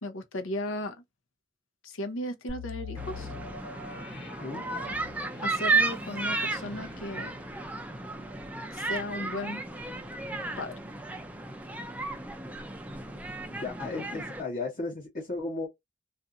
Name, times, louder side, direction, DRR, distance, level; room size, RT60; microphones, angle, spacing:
voice 1, 0.0-1.0 1.8-3.3 5.4-7.3 8.7-9.6 10.6-10.7, left 1 dB, 90° left, 0.8 m, -35 dB
sound 1, 2.5-12.2 12.6-12.7 13.2-13.4, left 4 dB, 55° left, 1.2 m, -46 dB
sound 2, 3.0-14.4, right 3 dB, 5° right, 0.3 m, -33 dB
voice 2, 13.5-15.7, left 3 dB, 40° left, 1.0 m, -35 dB
2.6 x 2.4 x 2.5 m
head